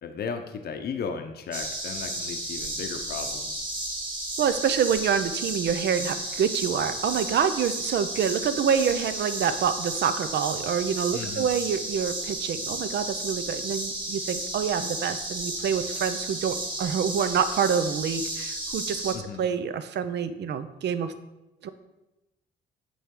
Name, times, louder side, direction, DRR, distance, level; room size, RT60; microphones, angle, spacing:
voice 1, 0.0-3.7 11.1-11.5 19.1-19.4, left 6 dB, 55° left, 6 dB, 0.7 m, -35 dB
sound 1, 1.5-19.2, right 1 dB, 25° right, 1.5 m, -33 dB
voice 2, 4.4-21.1 21.6-21.7, right 7 dB, 60° right, 11 dB, 0.5 m, -27 dB
8.4 x 3.5 x 3.7 m, 0.97 s
cardioid pair, 90°, 20 cm